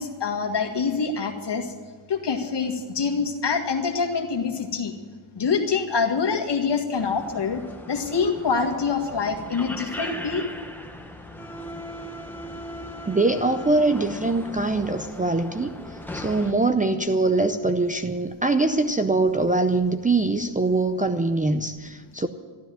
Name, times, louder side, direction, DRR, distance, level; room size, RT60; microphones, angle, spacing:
voice 1, 0.0-1.7 2.1-4.9 5.4-7.6 7.9-10.4, left 5 dB, 55° left, 3 dB, 2.0 m, -25 dB
sound 1, 6.9-16.5, left 1 dB, 5° left, 1.1 m, -38 dB
voice 2, 13.1-15.7 16.1-22.3, right 3 dB, 15° right, 8 dB, 0.5 m, -23 dB
13.0 x 12.5 x 7.6 m, 1.5 s
wide cardioid pair, 135°, 49 cm